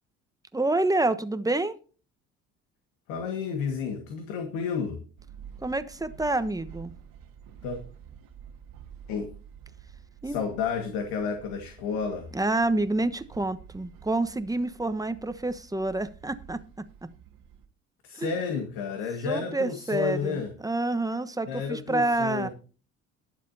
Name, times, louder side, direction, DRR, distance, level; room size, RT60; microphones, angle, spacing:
voice 1, 0.5-1.8 5.6-6.9 10.2-10.4 12.3-16.6 17.0-17.1 18.2-18.3 19.2-22.5, right 2 dB, 10° right, 1.2 m, -28 dB
voice 2, 3.1-5.0 7.6-7.8 9.1-9.3 10.2-12.3 18.0-20.5 21.5-22.5, left 6 dB, 70° left, 1.9 m, -31 dB
sound 1, 5.2-17.7, right 8 dB, 60° right, 2.1 m, -49 dB
21.5 x 7.4 x 2.8 m
hypercardioid pair, 60°, 38 cm